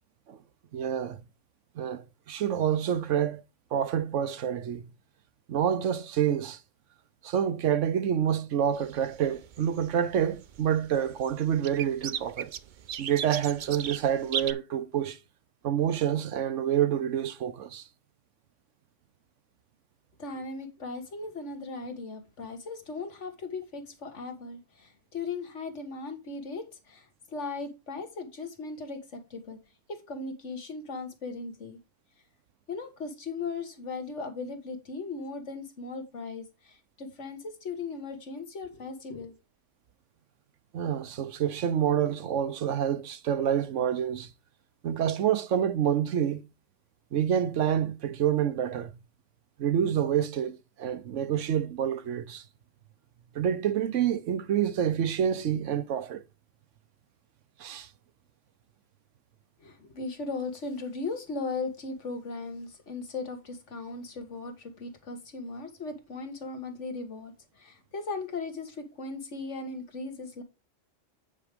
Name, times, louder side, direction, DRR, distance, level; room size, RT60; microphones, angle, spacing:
voice 1, 0.7-1.2 1.8-3.4 3.7-4.9 5.5-6.6 7.2-12.5 13.0-15.2 15.6-17.8 40.7-44.3 44.8-46.4 47.1-48.9 49.6-52.4 53.3-56.2 57.6-57.9, right 9 dB, 80° right, 1.1 m, -27 dB
sound 1, 8.7-14.5, right 8 dB, 55° right, 0.6 m, -38 dB
voice 2, 20.2-29.6 29.9-31.8 32.7-39.3 59.6-70.4, left 3 dB, 70° left, 1.8 m, -38 dB
8.9 x 4.7 x 5.1 m
omnidirectional pair, 1.3 m